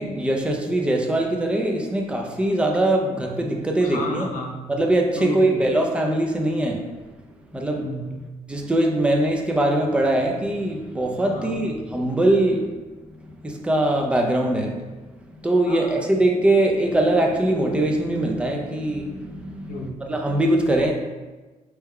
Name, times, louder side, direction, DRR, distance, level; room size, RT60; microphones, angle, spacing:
voice 1, 0.0-4.3 4.7-6.8 7.5-7.9 8.5-12.7 13.4-14.8 15.4-20.9, right 1 dB, 10° right, 1 dB, 0.4 m, -22 dB
voice 2, 3.8-4.6 5.2-5.6 7.7-8.2 11.3-11.6 15.7-16.0 19.7-20.0, left 2 dB, 85° left, -1 dB, 0.6 m, -32 dB
4.6 x 2.2 x 3.4 m, 1.2 s
cardioid pair, 150°, 13 cm